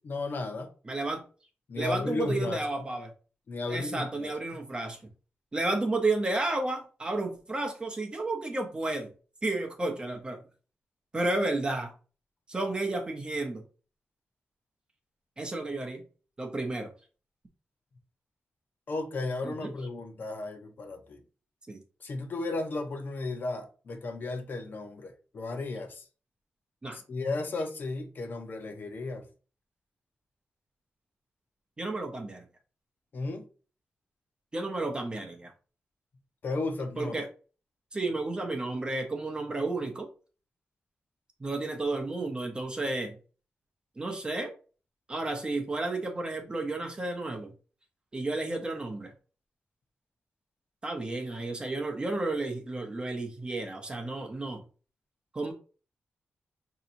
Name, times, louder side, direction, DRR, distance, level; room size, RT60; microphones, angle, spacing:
voice 1, 0.0-0.7 1.7-2.6 3.5-4.3 18.9-21.2 22.0-26.1 26.9-29.2 33.1-33.5 36.4-37.2, left 3 dB, 50° left, 0.7 m, -34 dB
voice 2, 0.9-1.2 1.8-3.1 3.7-5.1 5.5-9.1 9.4-10.4 11.1-11.9 12.5-13.6 15.4-16.0 16.4-16.9 19.4-19.7 21.7-21.8 26.8-27.0 31.8-32.5 34.5-35.5 37.0-37.3 37.9-40.1 41.4-43.2 44.0-44.5 45.1-47.5 48.1-49.1 50.8-54.6 55.3-55.5, right 2 dB, 20° right, 0.7 m, -32 dB
5.4 x 2.8 x 2.6 m
wide cardioid pair, 175°, 4 cm